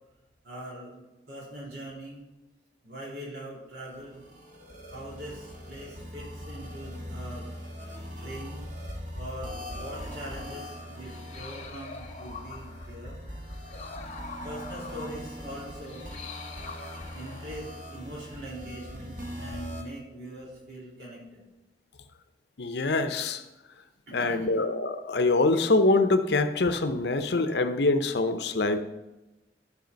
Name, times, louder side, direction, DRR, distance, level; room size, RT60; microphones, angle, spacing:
voice 1, 0.4-2.2 2.8-4.2 4.9-7.5 7.8-8.6 9.1-13.2 14.4-16.1 17.1-21.4 24.1-24.6, right 1 dB, 65° right, -5 dB, 3.5 m, -42 dB
sound 1, 3.9-19.8, equal, 45° right, 1.6 m, -41 dB
sound 2, 9.9-18.5, left 4 dB, 35° left, 0.9 m, -46 dB
voice 2, 22.6-23.4 24.1-28.8, left 2 dB, 70° left, 9 dB, 0.7 m, -24 dB
12.0 x 4.9 x 5.2 m, 1.0 s
head